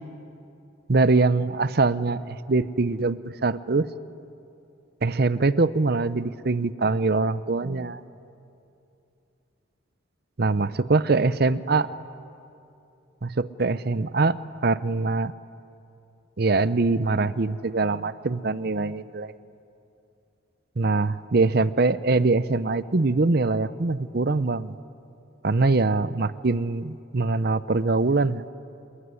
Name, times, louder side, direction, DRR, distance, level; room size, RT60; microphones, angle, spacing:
voice 1, 0.9-3.9 5.0-8.0 10.4-11.9 13.2-14.4 14.6-15.3 16.4-19.3 20.8-24.7 25.4-28.4, right 3 dB, 55° right, 16 dB, 0.7 m, -23 dB
28.0 x 21.0 x 9.8 m, 2.7 s
head